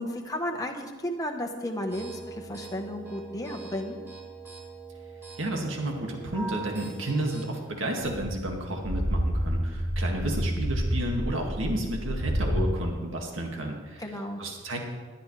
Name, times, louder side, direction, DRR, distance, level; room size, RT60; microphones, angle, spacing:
voice 1, 0.0-4.0 14.0-14.4, left 1 dB, 20° left, 2 dB, 1.1 m, -33 dB
sound 1, 1.9-7.4, right 4 dB, 10° right, 3.8 m, -42 dB
voice 2, 5.4-14.9, right 1 dB, 70° right, 1 dB, 2.1 m, -32 dB
sound 2, 8.0-12.7, equal, 45° right, 2.5 m, -29 dB
18.0 x 11.5 x 3.3 m, 1.4 s
head